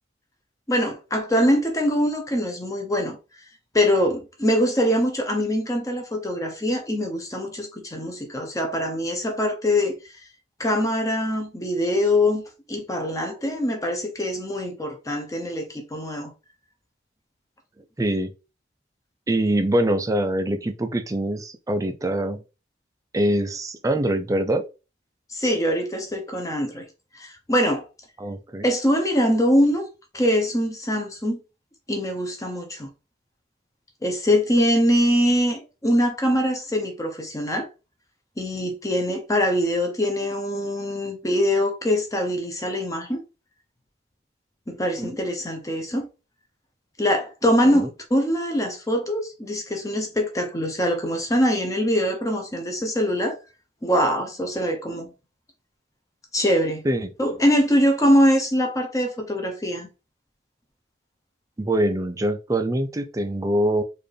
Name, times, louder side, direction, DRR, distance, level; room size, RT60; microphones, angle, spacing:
voice 1, 0.7-3.2 3.7-10.0 10.6-12.4 12.7-16.3 25.3-26.8 27.1-27.8 28.6-29.9 30.1-31.4 31.9-32.9 34.0-37.7 38.4-43.2 44.7-46.1 47.0-53.4 53.8-55.1 56.3-56.8 57.2-59.9, equal, 20° left, 0.8 m, -23 dB
voice 2, 18.0-18.3 19.3-22.4 23.1-24.6 28.2-28.6 45.0-45.2 47.6-47.9 56.8-57.1 61.6-63.8, right 1 dB, 20° right, 0.4 m, -24 dB
4.2 x 2.5 x 3.3 m
head